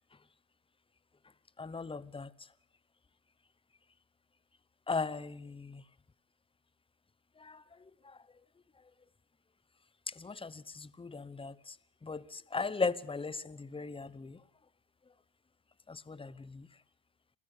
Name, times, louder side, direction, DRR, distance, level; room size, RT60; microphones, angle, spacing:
voice 1, 1.6-2.3 4.9-5.8 7.4-8.2 10.1-11.8 12.0-14.4 15.9-16.7, left 4 dB, 10° left, 0.9 m, -38 dB
27.0 x 16.0 x 6.6 m
supercardioid pair, 100°, 46 cm